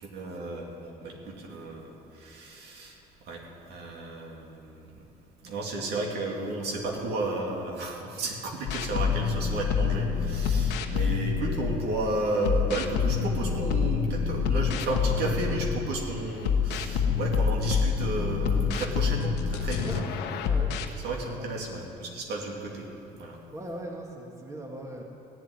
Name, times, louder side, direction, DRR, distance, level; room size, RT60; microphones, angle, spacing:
voice 1, 0.0-3.0 3.3-4.9 5.4-20.0 21.0-22.9 23.2-23.4, right 2 dB, 75° right, -1 dB, 2.7 m, -33 dB
sound 1, 8.7-12.0 12.4-16.0 16.4-20.9, left 6 dB, 90° left, 1.0 m, -27 dB
voice 2, 23.5-25.0, right 1 dB, 15° right, 0 dB, 2.0 m, -39 dB
15.5 x 7.7 x 9.8 m, 2.7 s
cardioid pair, 110°, 17 cm